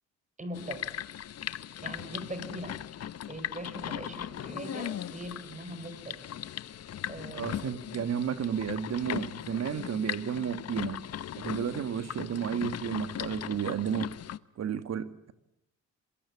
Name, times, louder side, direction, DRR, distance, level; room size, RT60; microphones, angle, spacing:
voice 1, 0.4-1.0 1.8-2.8 3.3-6.2 7.1-7.6 8.0-8.1, right 1 dB, 25° right, 6.5 m, -41 dB
sound 1, 0.5-14.4, left 10 dB, 55° left, 0.9 m, -38 dB
voice 2, 7.3-11.0 11.3-14.1 14.6-15.3, right 8 dB, 55° right, 1.9 m, -32 dB
27.5 x 23.0 x 8.7 m
cardioid pair, 90°, 30 cm